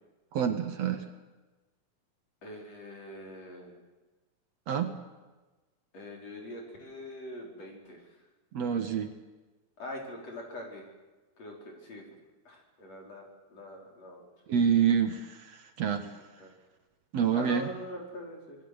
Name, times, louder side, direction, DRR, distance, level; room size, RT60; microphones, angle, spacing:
voice 1, 0.3-1.0 4.7-4.9 8.5-9.1 14.5-16.1 17.1-17.7, right 8 dB, 60° right, 7 dB, 2.4 m, -27 dB
voice 2, 2.4-3.8 5.9-8.0 9.8-10.8 11.4-12.0 12.5-14.2 16.4-16.5 17.3-18.6, left 1 dB, 55° left, 0 dB, 6.0 m, -43 dB
27.0 x 20.5 x 8.1 m, 1.2 s
omnidirectional pair, 3.6 m